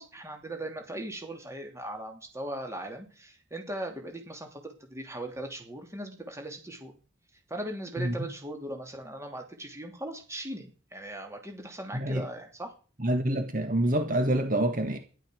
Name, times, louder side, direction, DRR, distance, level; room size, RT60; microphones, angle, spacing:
voice 1, 0.0-6.9 7.5-12.7, right 1 dB, 15° right, 2.9 m, -39 dB
voice 2, 13.0-15.0, right 1 dB, 45° right, 1.7 m, -26 dB
13.0 x 11.5 x 6.4 m
head